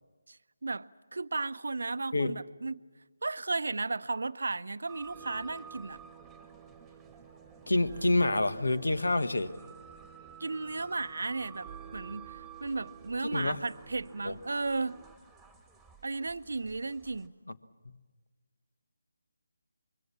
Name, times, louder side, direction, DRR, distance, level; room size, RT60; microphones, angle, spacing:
voice 1, 0.3-2.8 3.2-6.0 10.4-15.0 16.0-17.3, right 3 dB, 70° right, 0.7 m, -35 dB
sound 1, 4.9-17.3, right 6 dB, ahead, 1.8 m, -53 dB
sound 2, 5.1-15.2, right 9 dB, 30° right, 0.7 m, -52 dB
voice 2, 7.7-9.5 13.3-13.6 14.2-14.3, left 2 dB, 80° left, 1.4 m, -27 dB
25.5 x 23.0 x 7.4 m
figure-of-eight pair, 160°, 0 cm